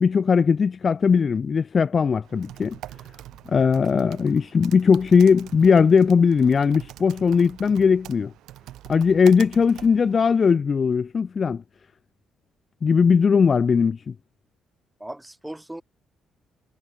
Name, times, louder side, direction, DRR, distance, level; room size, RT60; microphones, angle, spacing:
voice 1, 0.0-2.8 3.5-8.3 8.9-11.6 12.8-14.1, left 6 dB, 40° left, 0.4 m, -19 dB
Typing, 2.2-10.4, right 14 dB, 65° right, 4.2 m, -44 dB
voice 2, 3.3-3.6 15.0-15.8, right 1 dB, 10° right, 2.8 m, -38 dB
hypercardioid pair, 45°, 0 cm